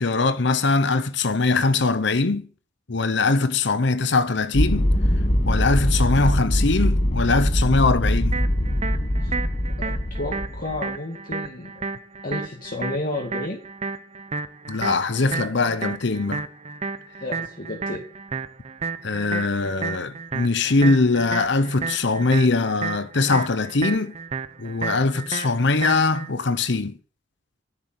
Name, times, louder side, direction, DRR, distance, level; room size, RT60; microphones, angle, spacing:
voice 1, 0.0-2.5 2.9-4.9 5.5-8.4 14.7-16.4 19.0-24.2 24.6-27.0, left 3 dB, 70° left, 0.9 m, -22 dB
sound 1, 4.5-10.8, equal, 35° left, 1.2 m, -22 dB
sound 2, 8.3-26.3, right 4 dB, 35° right, 0.9 m, -32 dB
voice 2, 9.8-11.8 12.2-13.7 17.2-18.0, left 2 dB, 50° left, 2.2 m, -32 dB
10.5 x 7.3 x 8.0 m
head